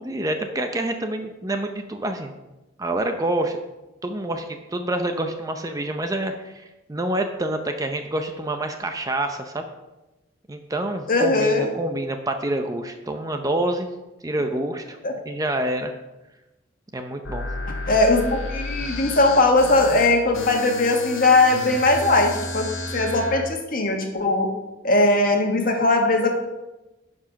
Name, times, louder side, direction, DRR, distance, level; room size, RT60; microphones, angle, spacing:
voice 1, 0.0-2.3 2.8-3.6 4.0-9.7 10.5-13.9 14.2-15.0 15.3-15.9 16.9-17.5, right 1 dB, 20° right, 6 dB, 0.6 m, -27 dB
voice 2, 11.1-11.7 15.0-15.1 17.9-22.7 22.9-24.5 24.8-26.3, left 2 dB, 45° left, 2 dB, 1.5 m, -19 dB
sound 1, 17.2-23.4, left 2 dB, 90° left, 1.4 m, -32 dB
11.0 x 4.9 x 5.7 m, 1.0 s
head